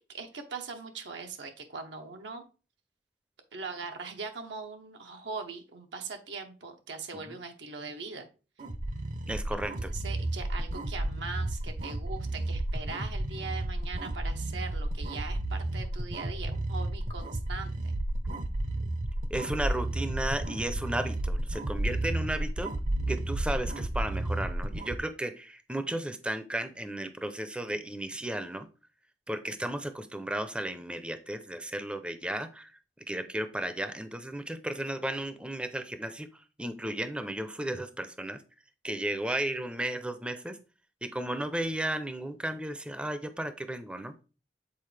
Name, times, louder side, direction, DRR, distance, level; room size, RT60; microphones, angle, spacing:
voice 1, 0.0-2.4 3.5-8.3 9.8-17.9, right 4 dB, 85° right, 4 dB, 0.9 m, -41 dB
sound 1, 8.6-25.0, right 1 dB, 45° right, 0.6 m, -32 dB
voice 2, 9.3-9.9 19.3-22.7 23.1-28.7 29.3-32.7 33.1-38.4 38.8-40.6 41.0-44.1, right 1 dB, 5° right, 10 dB, 0.5 m, -34 dB
7.5 x 4.1 x 3.2 m, 0.34 s
head